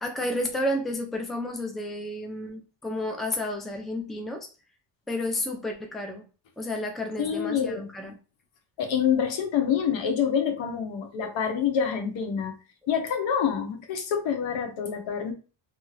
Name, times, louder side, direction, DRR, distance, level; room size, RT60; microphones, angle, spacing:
voice 1, 0.0-4.5 5.1-6.2 6.6-8.1, left 1 dB, ahead, 0.5 m, -31 dB
voice 2, 7.2-7.9 8.8-12.5 12.9-15.3, left 7 dB, 70° left, 0.8 m, -27 dB
2.6 x 2.4 x 3.2 m
cardioid pair, 110°, 47 cm